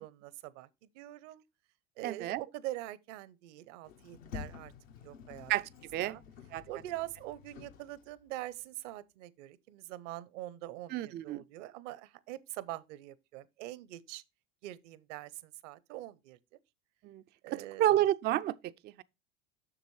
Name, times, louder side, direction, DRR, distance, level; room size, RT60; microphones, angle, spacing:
voice 1, 0.0-1.4 2.0-4.7 5.0-5.5 6.0-6.2 6.7-14.2 14.6-16.6 17.4-17.9, right 15 dB, 65° right, 0.8 m, -44 dB
voice 2, 2.0-2.4 5.5-6.2 6.5-6.6 10.9-11.4 17.0-17.2 17.5-19.0, right 13 dB, 30° right, 0.3 m, -30 dB
Sliding door, 3.8-8.3, left 7 dB, 75° left, 1.1 m, -49 dB
7.4 x 6.4 x 3.1 m
hypercardioid pair, 80°, 39 cm